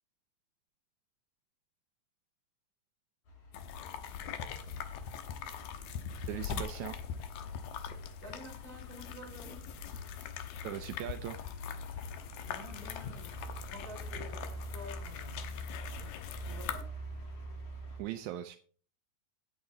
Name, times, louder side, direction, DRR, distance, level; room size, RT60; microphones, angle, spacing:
sound 1, 3.3-18.0, left 1 dB, 60° left, 4.6 m, -46 dB
sound 2, 3.5-16.8, left 8 dB, 85° left, 2.8 m, -42 dB
voice 1, 6.3-7.0 10.6-11.5 18.0-18.6, right 12 dB, 80° right, 9 dB, 1.7 m, -39 dB
voice 2, 8.2-9.7 12.4-15.6 16.0-16.9, equal, 25° right, 0 dB, 4.2 m, -50 dB
10.5 x 9.2 x 3.8 m, 0.42 s
omnidirectional pair, 4.0 m